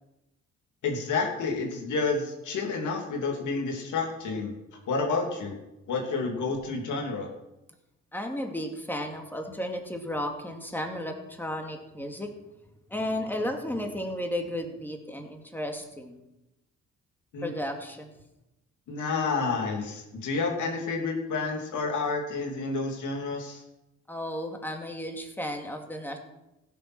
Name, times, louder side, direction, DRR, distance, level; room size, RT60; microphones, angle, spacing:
voice 1, 0.8-4.5 4.9-5.5 5.9-7.3 17.3-17.5 18.9-23.6, left 4 dB, 75° left, 1 dB, 3.0 m, -29 dB
voice 2, 8.1-12.3 12.9-16.2 17.4-18.1 24.1-26.2, left 1 dB, 5° left, 3 dB, 2.5 m, -33 dB
15.5 x 7.6 x 6.2 m, 0.93 s
cardioid pair, 90°, 30 cm